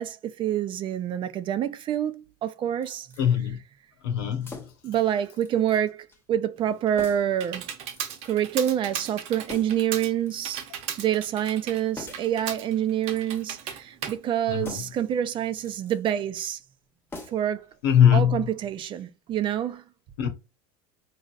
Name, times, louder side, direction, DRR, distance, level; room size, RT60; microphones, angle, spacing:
voice 1, 0.0-3.1 4.8-7.7 8.2-10.6 11.0-16.6 17.3-17.6 18.1-19.8, right 10 dB, 40° right, 0.6 m, -27 dB
sound 1, 2.8-3.3 4.4-4.9 5.4-5.8 6.1-6.2 7.0-7.4 7.9-8.5 9.5-9.9 10.3-10.9 12.0-12.4 13.0-13.6 14.6-15.1 15.5-16.0 17.1-17.6 17.9-18.0, left 2 dB, 20° left, 1.1 m, -44 dB
voice 2, 3.2-3.6 4.0-4.6 14.5-14.8 17.8-18.5 20.2-20.3, left 9 dB, 80° left, 1.1 m, -21 dB
Computer keyboard, 6.6-15.2, right 8 dB, 60° right, 1.0 m, -37 dB
4.0 x 3.1 x 2.5 m
supercardioid pair, 105°, 13 cm